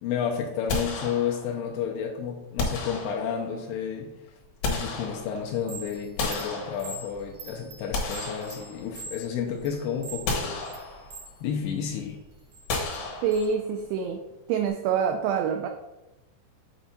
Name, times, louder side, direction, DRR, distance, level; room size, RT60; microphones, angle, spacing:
voice 1, 0.0-4.1 4.6-10.6 11.4-12.2, left 7 dB, 80° left, 1 dB, 2.4 m, -31 dB
sound 1, 0.7-1.7 2.6-3.6 4.3-5.6 6.2-7.3 7.7-9.2 9.6-9.7 10.3-11.3 12.7-13.8, left 3 dB, 65° left, 2.0 m, -33 dB
Chime, 5.5-11.3 11.8-13.5, right 3 dB, 70° right, 1.4 m, -43 dB
voice 2, 13.2-14.2 14.5-15.7, right 7 dB, 90° right, 5 dB, 2.3 m, -26 dB
8.0 x 4.4 x 4.1 m, 1.0 s
omnidirectional pair, 5.2 m